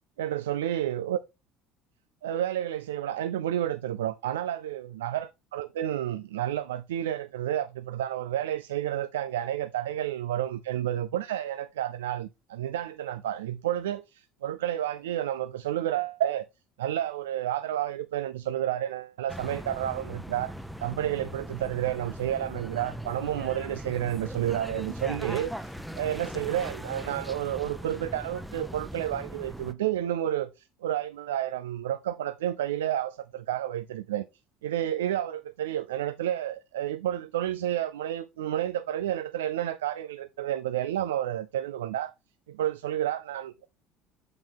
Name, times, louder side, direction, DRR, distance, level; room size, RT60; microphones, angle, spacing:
voice 1, 0.2-1.2 2.2-16.4 16.8-20.5 20.8-34.2 34.6-42.1 42.5-43.7, right 11 dB, 85° right, 0.3 m, -30 dB
sound 1, 19.3-29.7, equal, ahead, 0.8 m, -39 dB
7.3 x 5.3 x 3.5 m
hypercardioid pair, 70°, 0 cm